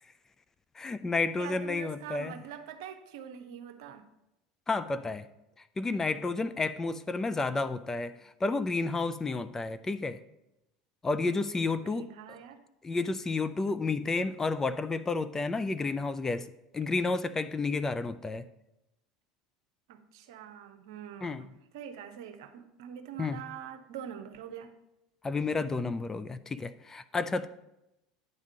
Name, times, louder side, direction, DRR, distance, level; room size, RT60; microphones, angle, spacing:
voice 1, 0.8-2.4 4.7-5.2 5.8-10.2 11.0-12.1 12.8-16.5 16.7-18.5 21.2-21.4 23.2-23.4 25.2-27.5, left 3 dB, 20° left, 12 dB, 0.4 m, -31 dB
voice 2, 1.4-4.0 8.1-8.2 11.8-12.6 19.9-24.7, right 8 dB, 70° right, 8 dB, 0.8 m, -44 dB
9.5 x 3.6 x 6.7 m, 0.90 s
hypercardioid pair, 75°, 2 cm